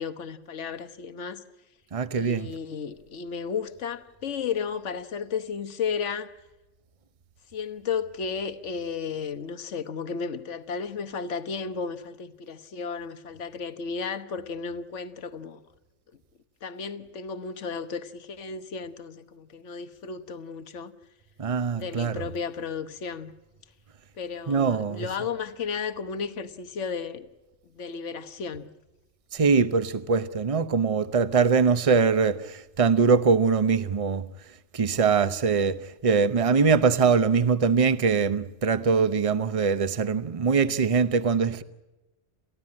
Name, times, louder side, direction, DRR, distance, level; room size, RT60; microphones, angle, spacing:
voice 1, 0.0-1.4 2.1-6.3 7.5-15.6 16.6-20.9 21.7-23.3 24.2-27.3 27.7-28.7, left 6 dB, 75° left, 1.5 m, -33 dB
voice 2, 1.9-2.5 21.4-22.3 24.5-25.1 29.3-34.3 34.7-41.6, right 5 dB, 30° right, 0.9 m, -22 dB
29.5 x 15.0 x 8.7 m
omnidirectional pair, 1.2 m